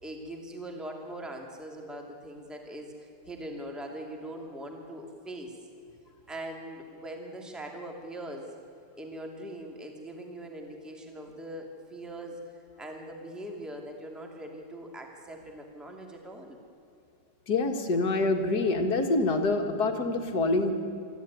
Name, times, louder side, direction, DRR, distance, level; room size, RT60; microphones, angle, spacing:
voice 1, 0.0-5.5 6.3-8.5 9.0-12.4 12.8-16.6, right 1 dB, ahead, 1 dB, 2.2 m, -41 dB
voice 2, 17.5-20.7, left 2 dB, 50° left, 4 dB, 2.2 m, -26 dB
24.5 x 13.5 x 9.3 m, 2.5 s
omnidirectional pair, 2.3 m